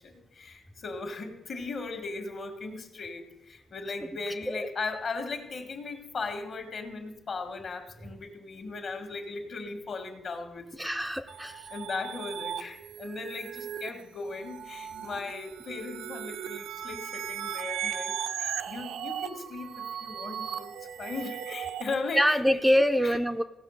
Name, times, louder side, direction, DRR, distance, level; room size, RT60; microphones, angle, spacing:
voice 1, 0.0-11.0 11.7-20.7 21.0-22.6 23.0-23.2, left 3 dB, 50° left, 5 dB, 1.8 m, -38 dB
voice 2, 10.8-11.7 22.1-23.4, equal, 5° right, 6 dB, 0.4 m, -25 dB
sound 1, 11.3-21.9, right 9 dB, 85° right, 0.6 m, -37 dB
16.5 x 5.6 x 6.5 m, 0.97 s
cardioid pair, 125°, 0 cm